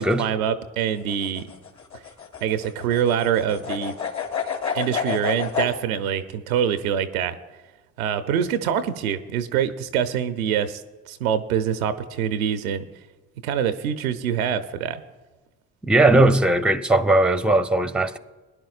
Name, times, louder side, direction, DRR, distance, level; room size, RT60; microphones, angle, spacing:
voice 1, 0.0-1.4 2.4-3.9 4.7-7.3 8.0-10.8 11.1-12.8 13.4-15.0, right 8 dB, 90° right, 0.6 m, -25 dB
sound 1, 1.0-5.7, left 7 dB, 45° left, 2.1 m, -29 dB
voice 2, 15.9-18.2, right 2 dB, ahead, 0.6 m, -18 dB
21.0 x 10.5 x 2.4 m
hypercardioid pair, 45°, 41 cm